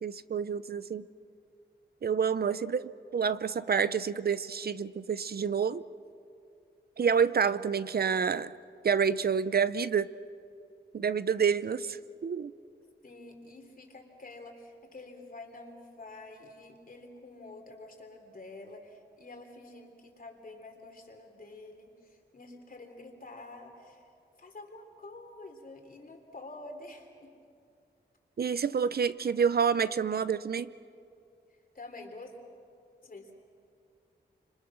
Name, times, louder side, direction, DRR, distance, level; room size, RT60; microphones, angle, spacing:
voice 1, 0.0-1.0 2.0-5.8 7.0-8.5 8.8-10.1 10.9-12.5 28.4-30.7, right 6 dB, 60° right, 14 dB, 0.6 m, -28 dB
voice 2, 13.0-24.0 24.4-27.3 31.7-32.3 33.0-33.3, left 2 dB, 50° left, 3 dB, 3.6 m, -48 dB
29.5 x 26.5 x 6.3 m, 2.5 s
wide cardioid pair, 110°, 18 cm